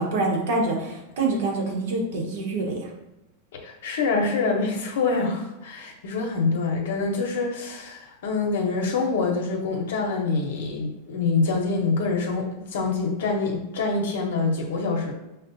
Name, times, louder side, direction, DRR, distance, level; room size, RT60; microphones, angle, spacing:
voice 1, 0.0-2.9, right 2 dB, 70° right, -1 dB, 1.0 m, -26 dB
voice 2, 3.6-15.1, left 4 dB, 85° left, 0 dB, 0.7 m, -25 dB
5.8 x 2.1 x 2.6 m, 0.93 s
supercardioid pair, 155°, 0 cm